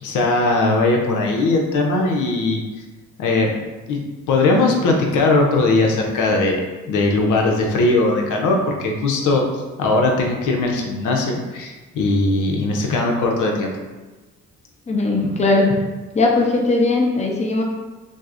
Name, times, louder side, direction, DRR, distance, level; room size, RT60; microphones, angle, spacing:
voice 1, 0.0-2.6 3.2-3.5 3.9-4.0 4.3-6.6 6.9-9.5 9.8-13.7, left 2 dB, 80° left, 1 dB, 0.7 m, -19 dB
voice 2, 14.9-15.7 16.1-17.6, left 2 dB, 25° left, -1 dB, 0.7 m, -18 dB
6.1 x 2.1 x 2.5 m, 1.2 s
cardioid pair, 90°, 30 cm